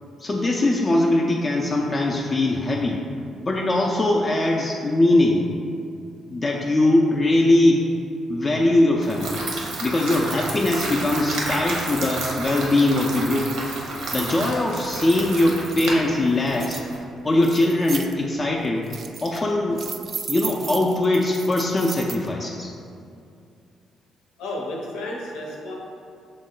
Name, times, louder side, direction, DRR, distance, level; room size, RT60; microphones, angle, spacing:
voice 1, 0.2-3.0 3.4-5.4 6.3-7.9 8.3-9.4 9.8-13.5 14.1-16.8 17.2-18.9 19.2-19.8 20.3-22.7, left 2 dB, 30° left, -1 dB, 0.4 m, -21 dB
sound 1, 9.0-17.0, right 2 dB, 85° right, 0.7 m, -31 dB
sound 2, 14.9-15.0 15.2-16.0 16.5-16.8 17.4-18.1 18.6-19.4 19.8-22.3, right 5 dB, 50° right, 0.3 m, -35 dB
voice 2, 24.4-25.7, left 1 dB, 90° left, -2 dB, 0.7 m, -32 dB
6.0 x 2.1 x 3.8 m, 2.4 s
cardioid pair, 90°, 0 cm